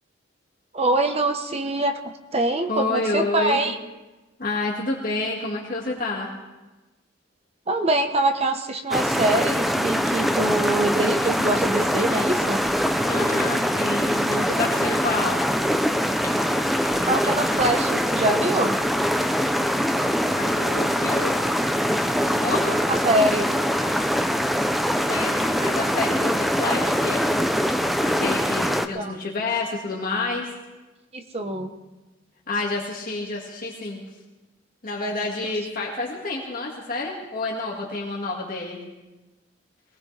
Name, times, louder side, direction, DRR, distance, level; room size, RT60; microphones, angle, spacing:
voice 1, 0.7-3.8 7.7-12.6 17.0-18.8 22.9-23.5 28.7-29.1 31.1-31.7, right 2 dB, 35° right, 6 dB, 1.0 m, -24 dB
voice 2, 2.7-3.6 4.4-6.3 13.0-15.4 20.3-21.4 22.3-22.8 25.1-30.5 32.5-34.0 34.8-38.8, left 2 dB, 45° left, -2 dB, 1.9 m, -29 dB
sound 1, 8.9-28.9, equal, ahead, 0.5 m, -23 dB
sound 2, 9.9-18.2, left 3 dB, 20° left, 1.7 m, -46 dB
22.5 x 18.5 x 3.3 m, 1.1 s
head